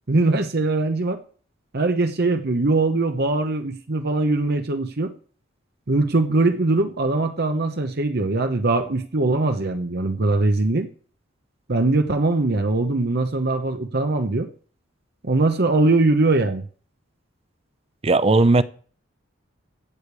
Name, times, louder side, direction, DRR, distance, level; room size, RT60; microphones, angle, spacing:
voice 1, 0.1-1.2 1.7-5.1 5.9-10.9 11.7-14.5 15.2-16.7, right 2 dB, 55° right, 1.0 m, -21 dB
voice 2, 18.0-18.6, right 2 dB, 30° right, 0.7 m, -16 dB
15.5 x 5.2 x 8.2 m
head